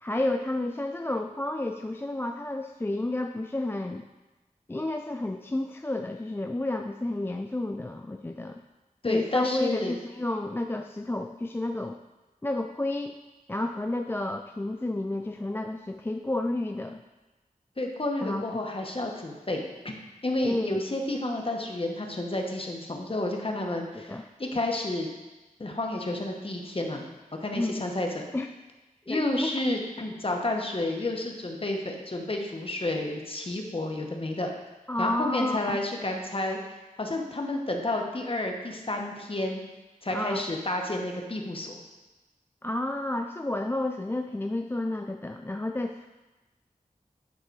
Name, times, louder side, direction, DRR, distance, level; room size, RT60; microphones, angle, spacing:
voice 1, 0.0-4.1 4.7-8.6 9.1-12.0 12.4-13.2 13.5-17.0 18.2-18.4 20.4-20.8 23.9-24.2 27.5-27.8 28.3-28.5 29.1-29.5 34.9-35.6 40.1-40.4 42.6-46.1, left 2 dB, 15° left, 5 dB, 0.3 m, -31 dB
voice 2, 9.0-9.9 17.8-19.9 20.2-25.1 25.6-27.1 27.4-28.3 29.1-34.5 35.0-39.6 40.0-41.8, left 2 dB, 40° left, 2 dB, 1.1 m, -30 dB
9.6 x 3.8 x 4.6 m, 1.1 s
wide cardioid pair, 55°, 14 cm